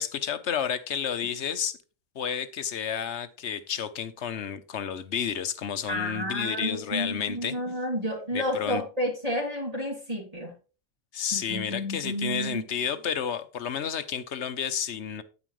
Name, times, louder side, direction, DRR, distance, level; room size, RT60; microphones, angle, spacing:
voice 1, 0.0-1.8 2.1-7.6 8.3-8.8 11.1-15.2, left 8 dB, 65° left, 11 dB, 1.1 m, -31 dB
voice 2, 5.9-10.5 11.3-12.7, equal, 30° right, -3 dB, 2.9 m, -31 dB
9.2 x 9.0 x 3.2 m, 0.34 s
omnidirectional pair, 1.3 m